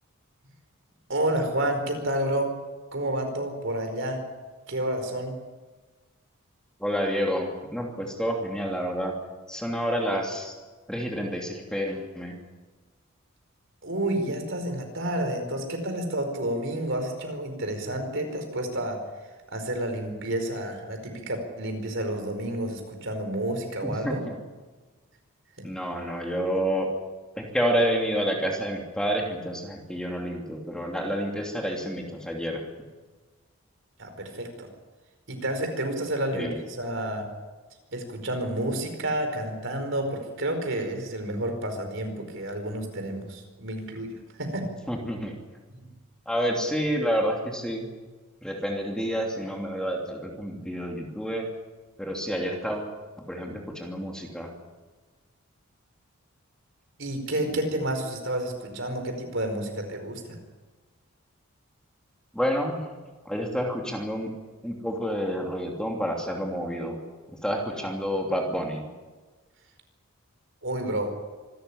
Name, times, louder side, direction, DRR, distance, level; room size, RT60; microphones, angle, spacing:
voice 1, 1.1-2.5 2.9-4.2 4.7-5.4 13.8-19.0 19.5-24.2 25.6-25.7 34.0-34.7 35.3-37.3 37.9-44.1 44.4-44.6 57.0-60.4 70.6-71.1, right 1 dB, 55° right, 5 dB, 4.8 m, -30 dB
voice 2, 6.8-9.1 9.5-10.5 10.9-12.4 23.8-24.2 25.6-26.9 27.4-32.6 36.3-36.5 44.9-45.4 46.3-47.9 48.4-51.5 52.0-52.9 53.3-54.5 62.3-62.8 63.2-64.3 64.6-67.0 67.4-68.8, equal, 5° left, 0 dB, 2.9 m, -29 dB
26.0 x 13.5 x 10.0 m, 1.3 s
head